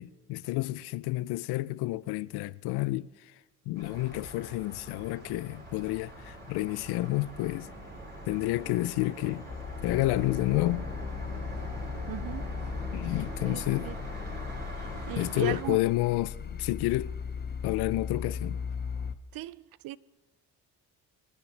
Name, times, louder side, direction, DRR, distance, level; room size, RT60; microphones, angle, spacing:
voice 1, 0.0-3.3 3.7-7.7 8.3-9.4 9.8-10.9 12.9-13.9 15.2-17.1 17.6-18.6, left 18 dB, 85° left, 0.5 m, -30 dB
sound 1, 3.7-15.6, equal, 25° right, 4.4 m, -42 dB
sound 2, 9.5-19.2, left 6 dB, 25° left, 0.6 m, -37 dB
voice 2, 12.1-12.5 13.4-13.9 14.8-15.8 19.3-20.0, right 15 dB, 65° right, 0.5 m, -38 dB
26.0 x 9.7 x 3.3 m
cardioid pair, 85°, 38 cm